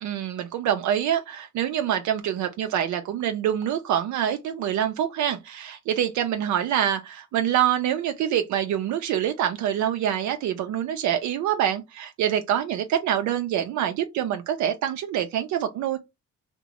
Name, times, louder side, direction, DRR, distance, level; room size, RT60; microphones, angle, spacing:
voice 1, 0.0-16.0, right 10 dB, 75° right, 0.5 m, -25 dB
2.6 x 2.1 x 2.9 m
cardioid pair, 90°, 30 cm